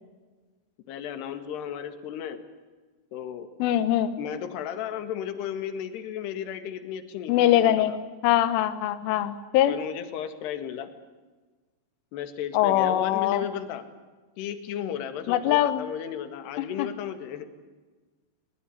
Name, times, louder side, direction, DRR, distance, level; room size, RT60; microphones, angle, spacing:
voice 1, 0.9-2.4 3.1-3.5 4.2-8.0 9.7-10.9 12.1-13.8 14.4-17.5, left 9 dB, 60° left, 10 dB, 3.6 m, -34 dB
voice 2, 3.6-4.1 7.3-7.9 8.2-9.7 12.5-13.5 15.3-15.8 16.8-16.9, left 12 dB, 75° left, 11 dB, 3.5 m, -22 dB
22.0 x 20.5 x 9.8 m, 1.3 s
omnidirectional pair, 5.9 m